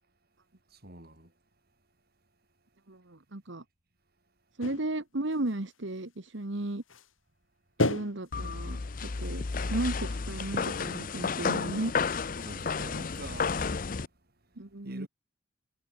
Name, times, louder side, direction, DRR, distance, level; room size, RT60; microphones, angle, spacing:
voice 1, 0.7-1.3 12.4-14.0 14.5-15.1, right 1 dB, 50° right, 5.5 m, -47 dB
voice 2, 2.9-3.6 4.6-6.8 7.8-11.9 14.6-15.1, right 2 dB, 65° right, 1.6 m, -35 dB
sound 1, 4.6-5.0 5.3-5.8 6.3-6.4 6.6-7.1 7.8-10.3, left 2 dB, 85° left, 3.6 m, -33 dB
sound 2, 8.3-14.1, left 4 dB, 45° left, 0.6 m, -32 dB
head